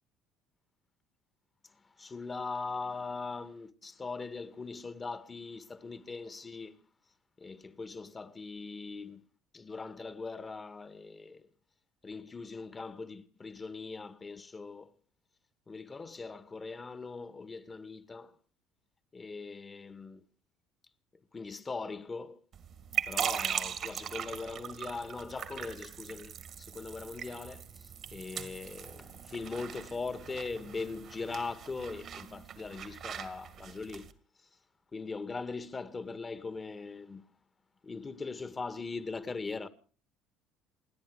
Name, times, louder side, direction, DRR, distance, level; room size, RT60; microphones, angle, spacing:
voice 1, 2.0-6.8 7.4-9.2 9.5-11.5 12.0-14.9 15.7-18.3 19.1-20.2 21.3-22.4 23.1-34.1 34.9-37.2 37.8-39.7, left 4 dB, 25° left, 1.9 m, -40 dB
sound 1, 22.5-34.1, right 8 dB, 50° right, 2.1 m, -40 dB
28.5 x 10.5 x 4.9 m
hypercardioid pair, 60°, 0 cm